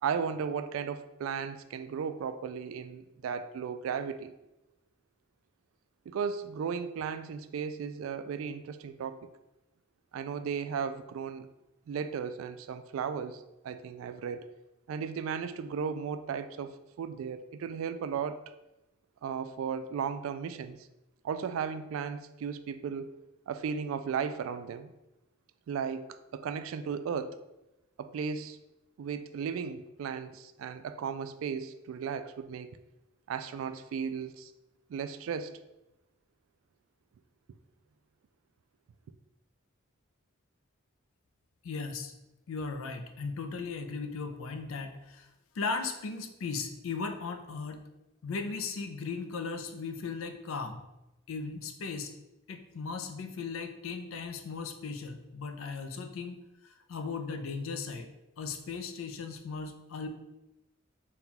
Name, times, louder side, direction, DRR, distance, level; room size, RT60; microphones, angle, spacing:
voice 1, 0.0-4.3 6.1-9.3 10.1-11.5 11.9-14.5 14.9-18.4 19.2-20.9 21.2-23.2 23.5-24.9 25.7-26.1 26.3-27.4 28.0-28.6 29.0-32.7 33.3-34.5 34.9-35.6, right 6 dB, 85° right, 11 dB, 0.3 m, -35 dB
voice 2, 41.6-42.1 42.5-45.3 45.5-47.8 48.2-50.8 51.3-52.1 52.5-58.1 58.4-60.1, left 4 dB, 85° left, 7 dB, 0.4 m, -37 dB
4.2 x 2.3 x 3.8 m, 0.95 s
head